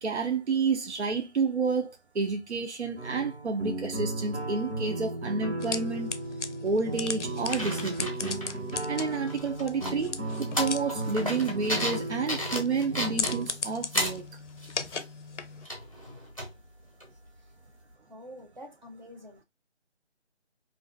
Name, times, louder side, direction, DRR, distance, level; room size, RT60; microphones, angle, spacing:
voice 1, 0.0-6.1 6.6-8.4 8.9-14.2, right 4 dB, 75° right, 0.6 m, -30 dB
sound 1, 3.0-13.4, right 2 dB, 90° right, 1.3 m, -35 dB
sound 2, 5.6-15.7, left 5 dB, 90° left, 0.5 m, -38 dB
sound 3, 7.4-8.7 9.0-14.2 14.6-15.0 15.6-16.5 17.0-17.1, equal, 30° left, 0.6 m, -34 dB
voice 2, 18.1-19.4, equal, 40° right, 0.7 m, -47 dB
2.5 x 2.3 x 2.2 m
figure-of-eight pair, 160°, 35 cm